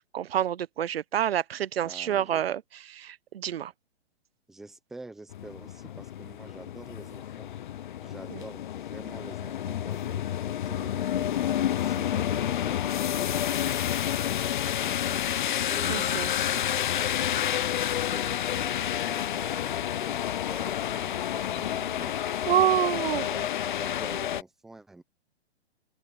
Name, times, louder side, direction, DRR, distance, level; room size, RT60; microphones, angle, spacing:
voice 1, 0.0-3.7 8.3-8.4 15.9-16.3 22.5-23.3, right 10 dB, 60° right, 0.9 m, -28 dB
voice 2, 1.8-2.4 4.5-7.5 8.0-11.5 11.8-17.4 17.9-22.5 23.1-25.0, right 2 dB, ahead, 0.6 m, -47 dB
sound 1, 5.3-24.4, left 11 dB, 45° left, 0.6 m, -29 dB
open air
hypercardioid pair, 165°, 34 cm